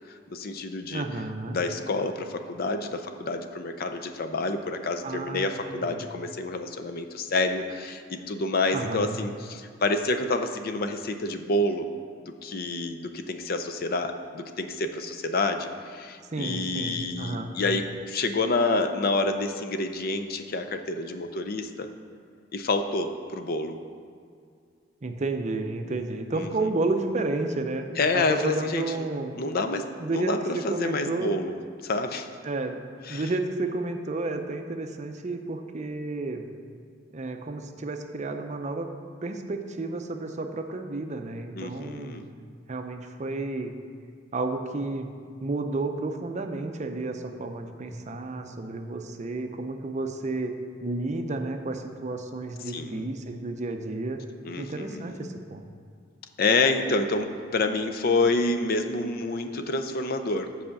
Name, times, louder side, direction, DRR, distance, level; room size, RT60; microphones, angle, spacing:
voice 1, 0.1-1.0 1.5-11.9 12.4-21.9 22.5-23.8 26.3-26.5 28.0-28.9 29.3-31.6 31.8-32.3 33.0-33.3 41.5-42.3 52.7-53.1 54.4-55.2 56.4-60.5, left 2 dB, 50° left, 7 dB, 0.5 m, -28 dB
voice 2, 0.9-1.6 5.0-6.0 8.7-9.2 16.3-17.5 25.0-27.9 28.1-29.3 30.0-31.4 32.4-32.8 33.1-36.4 37.1-38.9 39.2-42.2 42.7-43.7 44.3-45.1 45.4-50.5 50.8-54.2 54.6-55.6, right 2 dB, 40° right, 6 dB, 0.6 m, -31 dB
7.8 x 4.9 x 7.0 m, 2.2 s
head